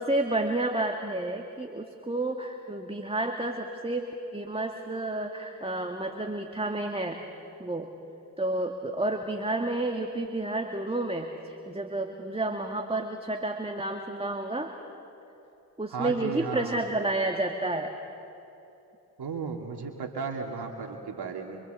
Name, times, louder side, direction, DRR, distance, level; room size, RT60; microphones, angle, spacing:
voice 1, 0.0-7.2 7.6-7.9 8.4-14.7 15.8-17.9, right 2 dB, 10° right, 3 dB, 2.2 m, -30 dB
voice 2, 15.9-16.8 19.2-21.6, right 5 dB, 50° right, 2 dB, 2.6 m, -35 dB
26.5 x 25.5 x 8.1 m, 2.8 s
hypercardioid pair, 45°, 50 cm